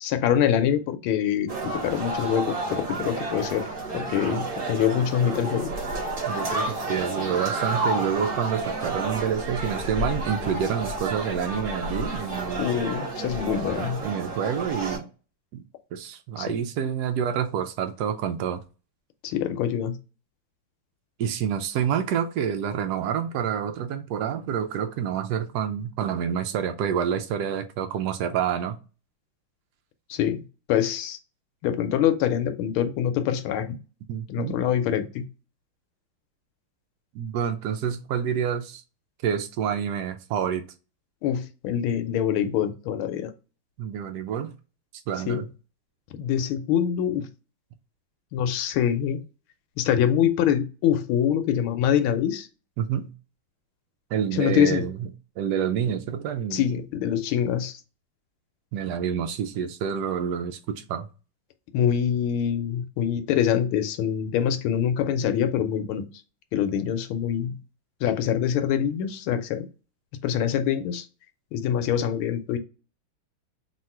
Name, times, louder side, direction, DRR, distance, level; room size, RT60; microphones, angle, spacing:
voice 1, 0.0-3.7 3.9-5.7 12.6-14.0 16.4-16.6 19.2-20.0 30.1-31.2 31.6-33.8 34.3-35.2 41.2-43.3 45.3-45.5 46.2-47.3 48.3-49.2 49.8-52.5 54.3-54.9 56.5-57.8 61.7-66.1 66.5-67.6 68.0-69.7 70.2-71.1 71.5-72.6, left 9 dB, 80° left, 1.4 m, -25 dB
sound 1, 1.5-15.0, right 2 dB, 45° right, 1.7 m, -30 dB
voice 2, 6.3-12.7 14.0-15.1 15.5-15.6 15.9-18.6 21.2-28.8 34.1-34.6 37.1-38.8 39.2-40.6 43.8-44.5 45.1-45.5 52.8-53.1 54.1-55.1 55.4-56.7 58.7-61.1, right 8 dB, 85° right, 0.9 m, -28 dB
3.7 x 2.4 x 4.4 m
omnidirectional pair, 2.3 m